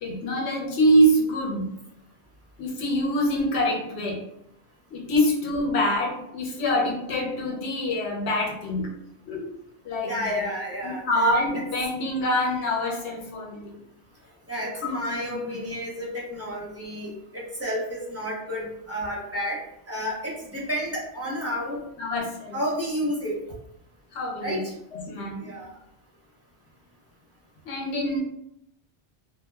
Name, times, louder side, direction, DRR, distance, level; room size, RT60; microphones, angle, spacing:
voice 1, 0.0-1.7 2.6-4.2 4.9-8.9 9.3-9.5 9.8-10.4 10.8-13.7 14.8-15.6 22.0-22.6 24.1-24.6 24.9-25.6 27.6-28.2, equal, 90° left, -1 dB, 0.9 m, -25 dB
voice 2, 10.1-11.0 14.5-19.6 19.9-21.8 22.5-23.4 24.4-24.7 25.4-25.7, equal, 15° right, -6 dB, 0.7 m, -31 dB
2.2 x 2.1 x 3.2 m, 0.79 s
omnidirectional pair, 1.1 m